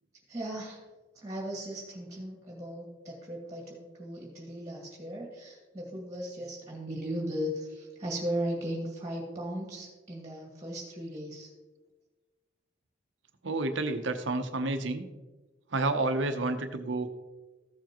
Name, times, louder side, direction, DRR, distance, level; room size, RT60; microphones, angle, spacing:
voice 1, 0.3-0.8 1.2-11.5, equal, 15° right, -2 dB, 2.2 m, -37 dB
voice 2, 13.4-15.1 15.7-17.1, right 2 dB, 75° right, 8 dB, 0.8 m, -30 dB
15.0 x 7.1 x 3.0 m, 1.2 s
head